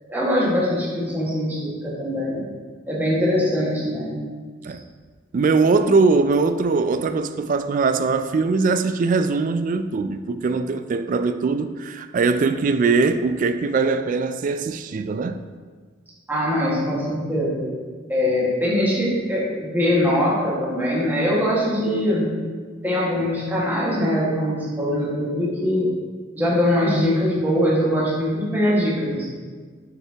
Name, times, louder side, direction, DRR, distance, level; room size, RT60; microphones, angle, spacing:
voice 1, 0.1-2.4 2.9-4.1 4.7-4.8 16.3-17.7 18.1-22.3 22.8-25.9 26.3-29.3, left 1 dB, 10° right, 1.7 m, -22 dB
voice 2, 5.3-15.5, right 4 dB, 40° right, 0.3 m, -21 dB
7.1 x 6.6 x 2.9 m
head